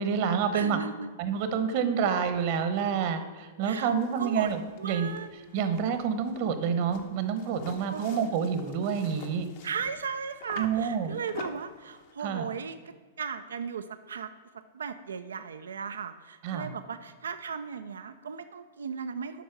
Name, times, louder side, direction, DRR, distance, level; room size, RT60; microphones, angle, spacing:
voice 1, 0.0-0.8 1.2-5.1 5.5-9.5 10.6-11.2 12.2-12.5 16.4-16.7, right 7 dB, 55° right, 10 dB, 1.0 m, -28 dB
voice 2, 0.5-1.1 3.6-4.5 4.8-5.7 7.9-8.2 9.6-14.3 14.7-19.4, right 6 dB, 85° right, 10 dB, 0.4 m, -37 dB
sound 1, 3.9-12.1, left 5 dB, 60° left, 1.1 m, -48 dB
8.2 x 5.4 x 5.9 m, 1.4 s
hypercardioid pair, 120°, 0 cm